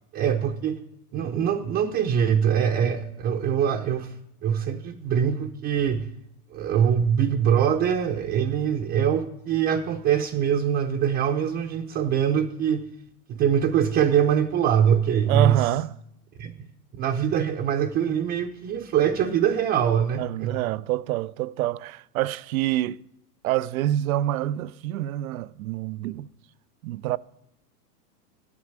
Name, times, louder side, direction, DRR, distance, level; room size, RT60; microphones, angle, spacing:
voice 1, 0.1-0.8 1.1-4.1 4.4-6.1 6.5-12.8 13.3-15.6 16.4-16.5 16.9-20.5, right 8 dB, 25° right, 0.7 m, -23 dB
voice 2, 15.3-15.9 20.2-23.0 23.4-26.3 26.8-27.2, right 13 dB, 60° right, 0.6 m, -26 dB
9.8 x 7.6 x 8.7 m
hypercardioid pair, 135°, 47 cm